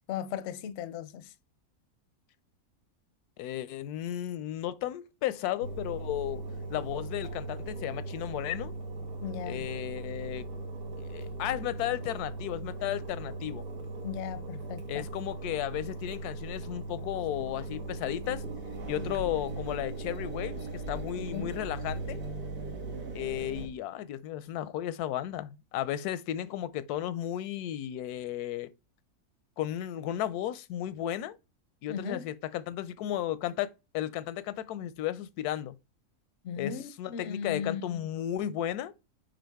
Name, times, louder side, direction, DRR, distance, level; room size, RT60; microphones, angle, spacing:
voice 1, 0.1-1.3 9.2-9.7 14.0-15.1 21.2-21.5 31.9-32.3 36.4-38.0, left 8 dB, 65° left, 0.7 m, -37 dB
voice 2, 3.4-6.4 6.7-8.7 9.5-10.5 11.0-13.6 14.9-18.4 18.9-22.2 23.1-28.7 29.6-31.4 31.8-35.8 36.6-38.9, left 12 dB, 85° left, 1.1 m, -34 dB
Engine, 5.6-23.7, right 2 dB, 85° right, 1.8 m, -39 dB
7.7 x 5.0 x 3.5 m
omnidirectional pair, 1.6 m